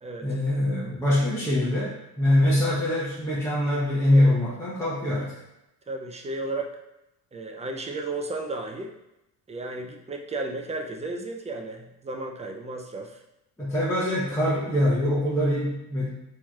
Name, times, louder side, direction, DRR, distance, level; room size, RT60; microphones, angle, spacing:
voice 1, 0.2-5.4 13.6-16.1, left 1 dB, 5° left, -8 dB, 0.8 m, -23 dB
voice 2, 5.9-6.7 7.3-8.9 9.5-13.2, right 2 dB, 20° right, 3 dB, 0.4 m, -33 dB
4.4 x 3.0 x 2.3 m, 0.90 s
cardioid pair, 105°, 38 cm